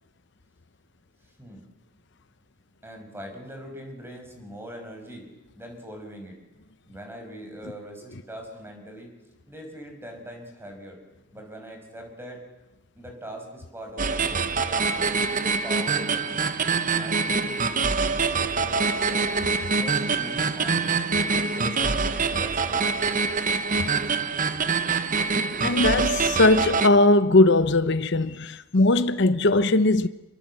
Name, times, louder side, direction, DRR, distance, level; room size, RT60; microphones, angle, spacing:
voice 1, 2.8-5.3 5.6-6.4 6.8-9.1 9.5-11.0 11.3-12.4 13.0-14.4 14.8-16.4 16.9-19.3 19.7-20.8 21.3-23.5, right 1 dB, 10° right, 5.8 m, -41 dB
sound 1, 14.0-26.9, right 4 dB, 45° right, 1.1 m, -25 dB
voice 2, 25.6-30.1, left 2 dB, 65° left, 0.9 m, -19 dB
27.0 x 23.0 x 7.7 m
head